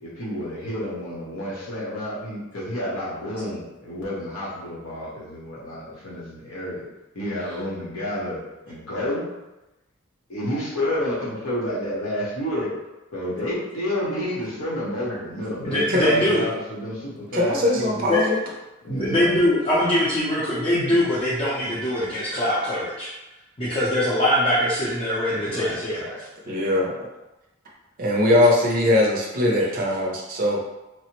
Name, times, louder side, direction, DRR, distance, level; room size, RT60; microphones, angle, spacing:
voice 1, 0.0-6.9 7.1-8.4 8.6-9.2 10.3-12.7 13.1-18.1 18.8-19.4 25.3-26.2 26.4-26.5, equal, 85° left, -6 dB, 1.1 m, -30 dB
voice 2, 15.6-16.5 18.1-18.3 18.9-23.1 23.6-26.3, left 1 dB, 30° left, -9 dB, 0.6 m, -22 dB
voice 3, 17.3-18.4 26.5-26.9 28.0-30.6, left 1 dB, 45° right, -2 dB, 0.5 m, -21 dB
3.2 x 2.0 x 2.9 m, 0.99 s
head